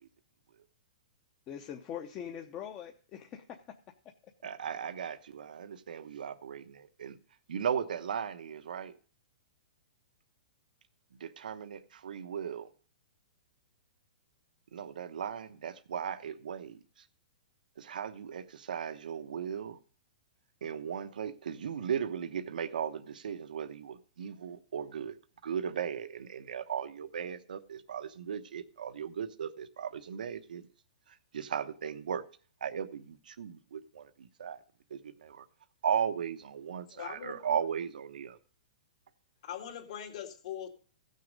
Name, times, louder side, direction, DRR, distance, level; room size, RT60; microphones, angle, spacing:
voice 1, 1.5-3.8 4.2-4.3, left 9 dB, 25° left, 0.8 m, -42 dB
voice 2, 4.4-7.2 7.5-8.9 11.2-12.7 14.7-17.1 17.8-19.8 20.6-25.2 25.4-30.7 31.1-32.2 32.6-34.6 34.9-35.5 35.8-38.4, right 8 dB, 85° right, 0.9 m, -37 dB
voice 3, 36.9-37.4 39.4-40.7, left 9 dB, 50° left, 2.0 m, -41 dB
15.5 x 6.6 x 5.2 m
hypercardioid pair, 160°, 4 cm